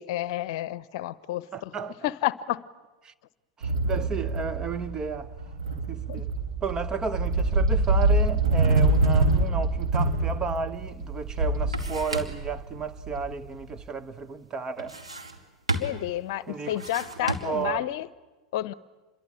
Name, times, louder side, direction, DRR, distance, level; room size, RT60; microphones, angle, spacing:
voice 1, 0.0-1.7 2.0-2.7 6.1-6.2 15.7-18.1 18.5-18.7, left 14 dB, 55° left, 0.8 m, -30 dB
voice 2, 1.5-2.1 3.0-3.1 3.6-5.4 5.9-6.3 6.6-15.0 16.5-16.7 17.2-17.9, right 5 dB, 25° right, 1.0 m, -33 dB
sound 1, 3.6-13.8, right 2 dB, 65° right, 4.1 m, -25 dB
sound 2, 10.9-11.0 11.3-12.5 14.8-15.4 15.7-16.1 16.7-17.7, right 2 dB, 85° right, 2.6 m, -33 dB
27.5 x 22.5 x 8.9 m
figure-of-eight pair, 85°, 3 cm